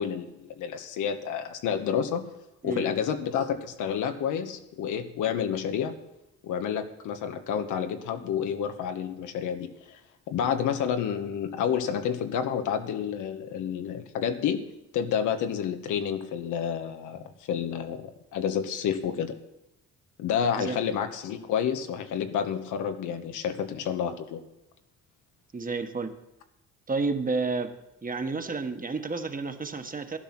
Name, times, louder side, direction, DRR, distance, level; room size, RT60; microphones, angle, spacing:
voice 1, 0.0-2.3 2.6-5.9 6.4-10.0 10.3-14.6 14.9-19.3 20.2-24.4, left 8 dB, 90° left, 7 dB, 1.4 m, -29 dB
voice 2, 25.5-26.1 26.9-27.7 28.0-30.2, right 4 dB, 30° right, 7 dB, 1.4 m, -30 dB
12.0 x 11.5 x 6.0 m, 0.89 s
cardioid pair, 90°, 30 cm